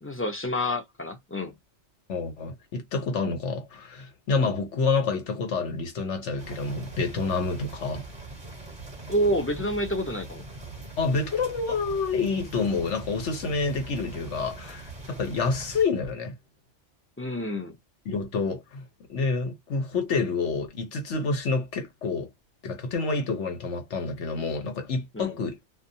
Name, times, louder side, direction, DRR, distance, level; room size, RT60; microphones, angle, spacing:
voice 1, 0.0-1.5 9.1-10.4 17.2-17.8 25.1-25.4, equal, 15° left, 0.6 m, -28 dB
voice 2, 2.1-8.0 11.0-16.4 18.1-22.3 22.6-25.6, left 4 dB, 75° left, 1.2 m, -28 dB
sound 1, 6.4-15.8, right 3 dB, 25° right, 1.1 m, -42 dB
2.5 x 2.3 x 2.7 m
omnidirectional pair, 1.2 m